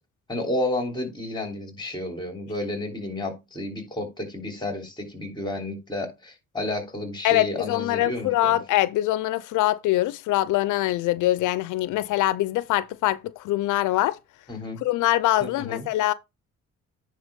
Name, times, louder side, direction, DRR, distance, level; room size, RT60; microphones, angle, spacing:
voice 1, 0.3-8.6 14.5-14.8 15.4-15.9, left 1 dB, 15° left, 3.1 m, -31 dB
voice 2, 7.2-14.2 14.8-16.1, left 15 dB, 80° left, 0.5 m, -23 dB
9.8 x 3.4 x 5.2 m
cardioid pair, 90°, 30 cm